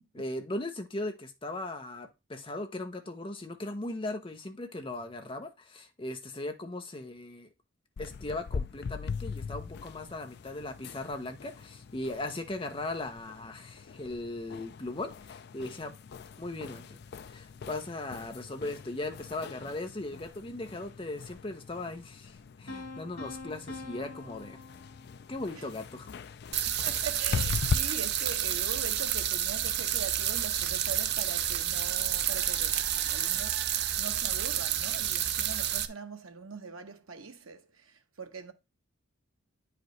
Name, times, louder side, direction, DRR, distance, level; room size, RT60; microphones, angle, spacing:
voice 1, 0.1-7.5 8.0-15.9 16.4-17.0 17.3-24.6 25.3-26.1, left 2 dB, 25° left, 0.8 m, -38 dB
sound 1, 8.0-27.8, left 5 dB, 50° left, 0.3 m, -40 dB
sound 2, 22.7-25.6, left 3 dB, 70° left, 1.6 m, -44 dB
sound 3, 26.5-35.9, right 10 dB, 50° right, 0.6 m, -30 dB
voice 2, 26.6-38.5, right 5 dB, 80° right, 1.1 m, -42 dB
9.2 x 4.9 x 3.2 m
head